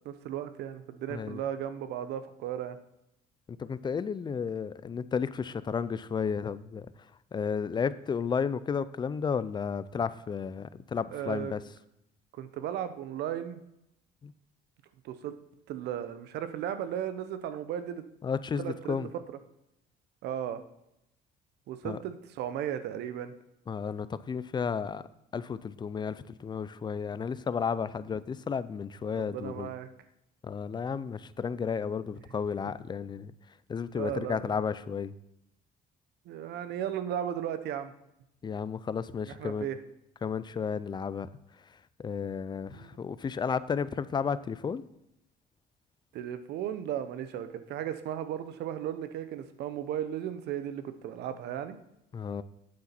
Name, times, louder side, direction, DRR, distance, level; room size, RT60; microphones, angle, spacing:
voice 1, 0.0-2.8 11.1-11.5 12.3-13.6 15.0-15.4 15.7-18.0 18.6-19.0 20.2-20.6 21.7-23.3 29.2-29.9 33.9-34.5 36.3-37.9 39.3-39.8 42.7-43.0 46.1-51.8, right 10 dB, 80° right, 11 dB, 0.8 m, -35 dB
voice 2, 1.1-1.4 3.6-11.6 14.2-14.3 18.2-19.1 21.8-22.0 23.7-25.0 25.3-29.7 30.4-33.3 33.7-35.1 38.4-39.7 40.2-41.3 41.6-44.8 52.1-52.4, left 6 dB, 25° left, 16 dB, 0.4 m, -33 dB
8.7 x 7.8 x 4.4 m, 0.83 s
cardioid pair, 110°, 17 cm